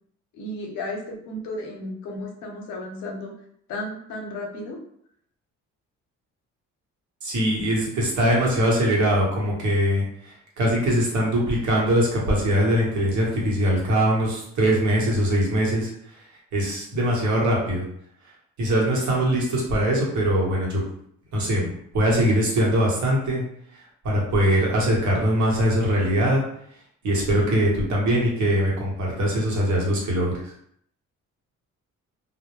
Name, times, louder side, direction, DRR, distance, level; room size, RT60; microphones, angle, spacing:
voice 1, 0.3-3.3 3.7-4.8, left 1 dB, 80° left, 0 dB, 0.7 m, -33 dB
voice 2, 7.2-10.0 10.6-15.9 16.5-17.8 18.6-20.8 21.3-23.4 24.0-26.4 27.0-30.3, equal, 70° right, -3 dB, 1.0 m, -22 dB
2.1 x 2.0 x 2.9 m, 0.67 s
cardioid pair, 90°, 30 cm